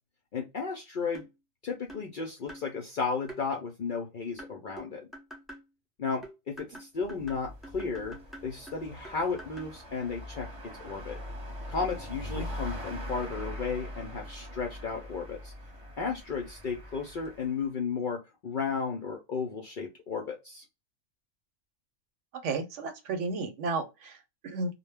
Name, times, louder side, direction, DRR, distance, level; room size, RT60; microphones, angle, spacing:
voice 1, 0.3-1.2 1.6-5.1 6.0-11.2 11.7-15.5 16.0-20.6, left 5 dB, 60° left, 0.5 m, -34 dB
sound 1, 1.1-1.4 1.9-2.1 2.5-2.7 3.3-3.4 4.4-5.7 6.2-9.8, right 1 dB, ahead, 0.5 m, -47 dB
sound 2, 7.0-17.6, left 1 dB, 30° right, 0.9 m, -42 dB
voice 2, 22.4-24.8, right 3 dB, 70° right, 0.9 m, -33 dB
2.1 x 2.1 x 3.3 m
omnidirectional pair, 1.4 m